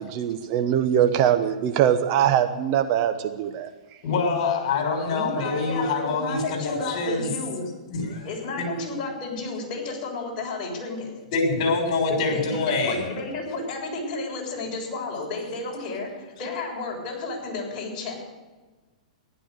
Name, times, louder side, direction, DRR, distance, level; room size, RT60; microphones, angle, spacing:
voice 1, 0.1-3.7, right 10 dB, 40° right, 8 dB, 1.1 m, -22 dB
voice 2, 4.0-7.3 7.9-8.3 8.6-8.7 11.3-13.1, left 4 dB, 50° left, 2 dB, 6.5 m, -25 dB
voice 3, 4.8-7.6 8.2-11.1 12.1-18.2, left 3 dB, 35° left, -2 dB, 7.0 m, -32 dB
15.0 x 12.0 x 6.7 m, 1.2 s
hypercardioid pair, 140°, 4 cm